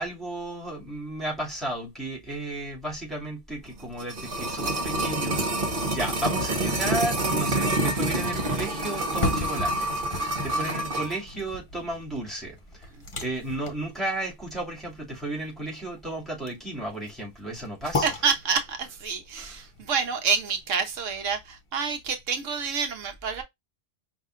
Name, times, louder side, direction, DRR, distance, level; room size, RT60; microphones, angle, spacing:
voice 1, 0.0-12.9 13.2-18.1 19.3-19.6, right 1 dB, ahead, 2.1 m, -34 dB
sound 1, 3.8-11.2 11.5-11.6, right 1 dB, 45° right, 1.3 m, -27 dB
sound 2, 9.1-21.0 21.4-21.5, left 2 dB, 30° left, 0.7 m, -36 dB
voice 2, 10.2-10.7 12.9-13.0 18.0-23.4, right 6 dB, 80° right, 1.2 m, -28 dB
5.4 x 2.8 x 2.4 m
omnidirectional pair, 1.3 m